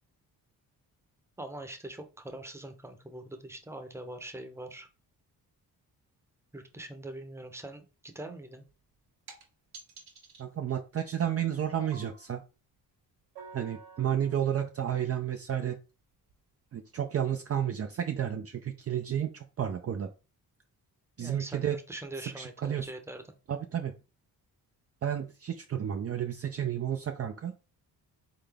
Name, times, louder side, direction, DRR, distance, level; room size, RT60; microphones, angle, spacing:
voice 1, 1.4-4.9 6.5-8.6 21.2-23.2, right 1 dB, 5° right, 6 dB, 0.8 m, -43 dB
sound 1, 8.7-8.8 9.3-9.4 9.7-10.4 11.7-12.2 13.4-14.4 15.4-15.5 16.3-16.4, right 5 dB, 75° right, 1.5 m, -48 dB
voice 2, 10.4-12.4 13.5-15.8 16.7-20.1 21.2-21.8 22.2-22.9 23.5-23.9 25.0-27.5, right 9 dB, 40° right, 5 dB, 0.5 m, -31 dB
3.8 x 3.8 x 3.5 m, 0.31 s
cardioid pair, 100°, 38 cm